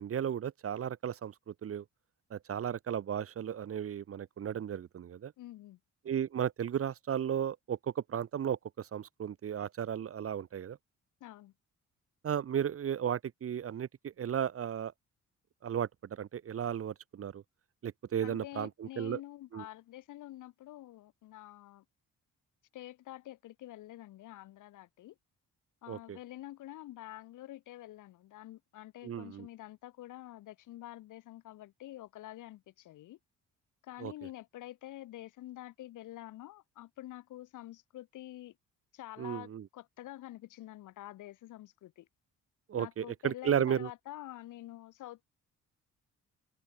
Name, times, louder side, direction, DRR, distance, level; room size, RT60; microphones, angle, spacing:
voice 1, 0.0-1.8 2.3-5.3 6.0-7.8 8.1-10.8 12.2-14.9 15.6-17.4 17.8-19.2 19.5-19.6 25.9-26.2 29.0-29.5 34.0-34.1 39.2-39.6 42.7-43.9, right 9 dB, 50° right, 1.1 m, -34 dB
voice 2, 5.4-5.8 11.2-11.5 18.2-21.8 22.7-25.1 25.8-33.2 33.8-38.5 38.9-42.1 42.7-45.3, left 15 dB, 85° left, 2.6 m, -47 dB
cardioid pair, 90°, 30 cm